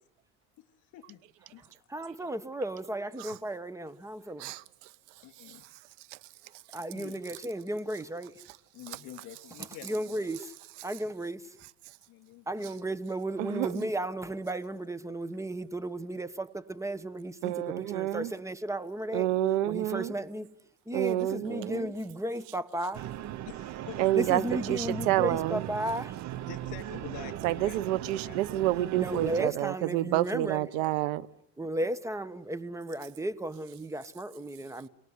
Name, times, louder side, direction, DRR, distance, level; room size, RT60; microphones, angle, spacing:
voice 1, 1.9-4.5 6.7-8.4 9.8-10.5 10.8-11.4 12.5-19.3 19.7-20.5 20.9-23.0 24.1-26.1 28.9-30.7 31.6-34.9, right 1 dB, 10° right, 1.1 m, -34 dB
voice 2, 5.2-5.7 6.9-7.2 8.7-10.3 12.1-12.7 23.4-24.4 26.4-28.4 31.6-31.9, left 12 dB, 60° left, 3.3 m, -47 dB
voice 3, 13.4-13.9 17.4-18.3 19.1-20.1 20.9-21.9 24.0-25.7 27.4-31.3, right 14 dB, 90° right, 1.1 m, -29 dB
sound 1, 22.9-29.5, right 13 dB, 50° right, 1.0 m, -38 dB
28.5 x 18.5 x 9.6 m
cardioid pair, 120°, 36 cm